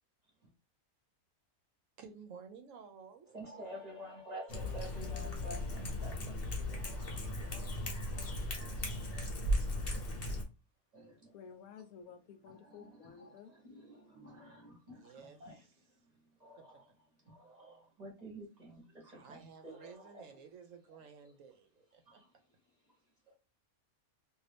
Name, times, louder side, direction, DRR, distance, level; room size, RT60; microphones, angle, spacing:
voice 1, 2.0-3.3 14.9-15.7 19.1-22.2, right 6 dB, 70° right, 0.9 m, -54 dB
voice 2, 3.3-9.3 10.9-11.3 12.5-15.6 16.4-16.8 17.2-20.2 22.1-22.3 23.3-23.4, equal, 30° right, 0.9 m, -51 dB
Cat, 4.5-10.4, left 1 dB, 45° left, 1.0 m, -37 dB
voice 3, 11.3-13.5, left 7 dB, 80° left, 1.0 m, -53 dB
2.6 x 2.6 x 3.2 m
omnidirectional pair, 1.5 m